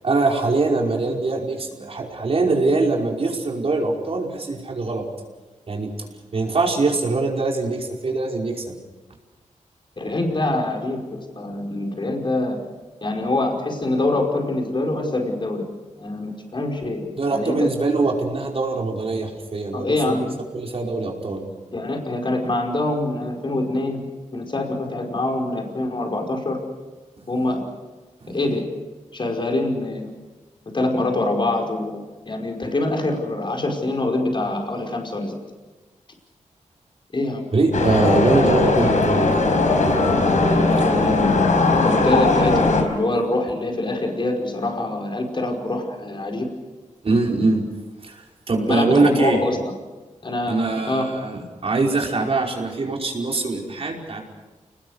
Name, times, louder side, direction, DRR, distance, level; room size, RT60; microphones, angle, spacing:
voice 1, 0.0-5.1 5.7-5.9 6.3-8.8 17.2-20.2 20.5-21.5 27.2-27.3 28.2-28.4 37.5-39.3 47.0-47.6 48.0-49.4 50.5-54.2, right 3 dB, 50° right, 0 dB, 5.3 m, -22 dB
voice 2, 10.0-12.6 13.0-15.6 16.0-17.7 19.7-20.3 21.7-24.0 24.3-26.6 27.3-27.6 28.3-28.7 29.1-30.1 30.7-35.4 37.1-37.5 40.7-46.5 48.5-49.6 50.2-51.1, left 2 dB, 40° left, 2 dB, 5.2 m, -25 dB
sound 1, 37.7-42.8, left 3 dB, 80° left, 4.8 m, -18 dB
30.0 x 20.0 x 6.6 m, 1.3 s
wide cardioid pair, 105°, 13 cm